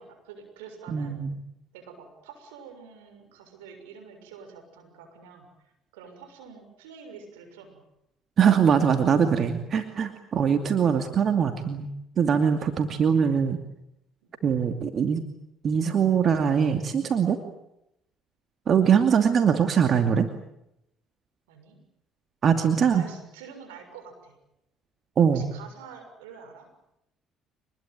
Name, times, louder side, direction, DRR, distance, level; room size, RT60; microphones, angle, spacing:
voice 1, 0.0-1.2 1.7-7.8 12.6-12.9 14.2-14.4 21.5-21.8 22.9-24.4 25.3-26.7, right 6 dB, 85° right, 6 dB, 6.7 m, -47 dB
voice 2, 0.9-1.3 8.4-11.9 12.2-13.6 14.4-15.2 15.6-17.4 18.7-20.3 22.4-23.0 25.2-25.5, right 7 dB, 50° right, 7 dB, 2.5 m, -22 dB
26.0 x 21.0 x 9.1 m, 0.83 s
hypercardioid pair, 65°, 0 cm